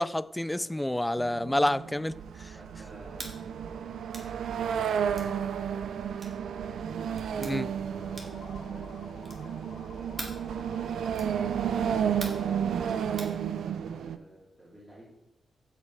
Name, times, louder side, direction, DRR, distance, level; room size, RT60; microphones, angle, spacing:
voice 1, 0.0-2.5 7.4-7.7, left 1 dB, 10° left, 0.3 m, -29 dB
sound 1, 1.2-14.2, right 8 dB, 85° right, 0.5 m, -32 dB
voice 2, 2.5-6.0 6.6-13.4 13.8-15.1, right 1 dB, 20° right, 3.2 m, -53 dB
sound 2, 3.1-3.4 4.1-4.3 5.1-5.3 6.2-6.4 7.2-7.5 8.1-8.5 9.2-9.5 10.2-10.4 11.1-11.4 12.2-12.5 13.2-13.4, right 2 dB, 35° right, 2.3 m, -42 dB
sound 3, 7.8-13.5, left 4 dB, 70° left, 1.7 m, -51 dB
15.0 x 5.2 x 4.9 m
cardioid pair, 105°, 0 cm